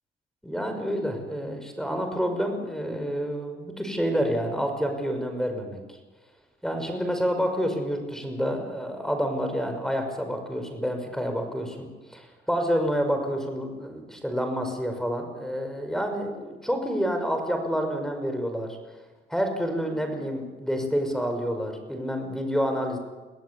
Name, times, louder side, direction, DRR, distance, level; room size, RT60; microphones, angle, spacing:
voice 1, 0.4-5.8 6.6-18.8 19.3-23.0, equal, ahead, 5 dB, 5.9 m, -28 dB
23.5 x 16.5 x 8.6 m, 1.2 s
cardioid pair, 90°, 20 cm